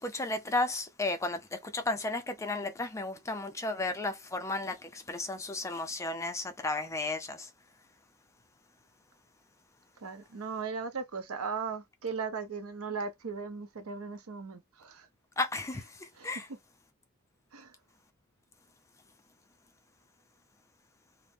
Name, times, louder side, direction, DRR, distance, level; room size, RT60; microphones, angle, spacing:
voice 1, 0.0-7.5 15.4-16.5, left 2 dB, 15° left, 0.4 m, -34 dB
voice 2, 10.0-15.1 16.2-16.3 17.5-17.7, right 5 dB, 85° right, 0.6 m, -37 dB
2.5 x 2.0 x 3.3 m
head